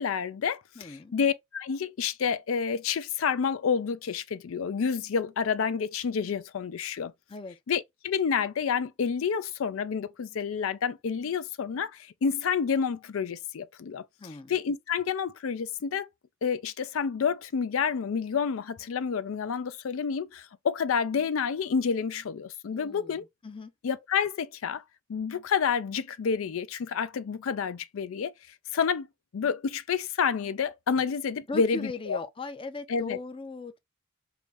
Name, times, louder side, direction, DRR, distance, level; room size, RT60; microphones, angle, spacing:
voice 1, 0.0-7.1 7.7-16.1 16.4-23.2 23.8-24.8 25.1-28.3 28.7-29.1 29.3-32.2 32.9-33.2, left 6 dB, 80° left, 0.4 m, -29 dB
voice 2, 0.8-1.1 7.3-7.6 14.2-14.5 22.7-23.7 31.5-33.8, left 3 dB, 25° left, 0.5 m, -38 dB
4.9 x 2.6 x 2.9 m
head